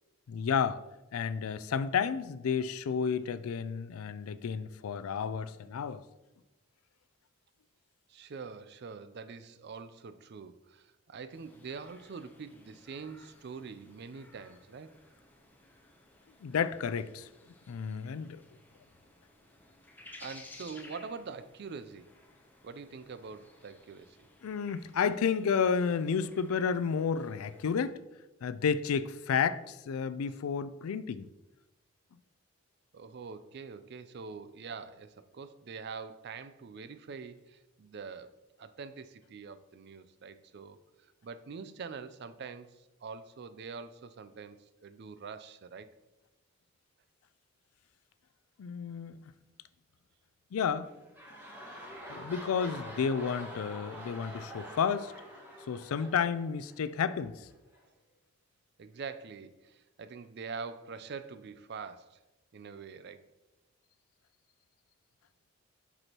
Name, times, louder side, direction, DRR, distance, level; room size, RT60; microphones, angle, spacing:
voice 1, 0.3-0.8 1.1-6.0 16.4-17.3 17.7-18.4 24.4-28.0 28.4-31.3 48.6-49.2 50.5-50.9 52.1-55.1 55.7-57.5, left 6 dB, 85° left, 0.4 m, -31 dB
voice 2, 8.1-14.9 20.2-22.1 22.6-24.2 32.9-38.3 38.6-40.8 41.2-45.9 51.3-51.5 58.8-62.2 62.5-63.2, right 5 dB, 50° right, 0.4 m, -44 dB
sound 1, 11.3-27.9, left 2 dB, 10° left, 0.7 m, -57 dB
sound 2, 50.8-57.1 57.7-57.8, equal, 10° right, 1.5 m, -46 dB
7.8 x 6.1 x 2.9 m
head